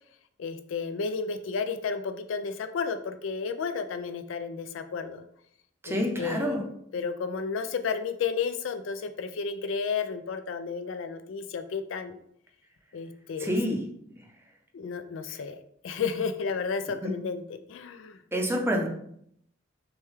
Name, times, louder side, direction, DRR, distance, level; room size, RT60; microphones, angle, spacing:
voice 1, 0.4-5.2 5.8-12.2 12.9-13.5 14.7-15.6 15.8-17.4 17.7-18.2, left 5 dB, 75° left, 9 dB, 0.4 m, -32 dB
voice 2, 5.8-6.6 13.4-13.8 15.3-15.4 17.0-17.2 18.3-18.9, equal, 15° right, 1 dB, 0.6 m, -28 dB
6.2 x 2.3 x 3.2 m, 0.69 s
head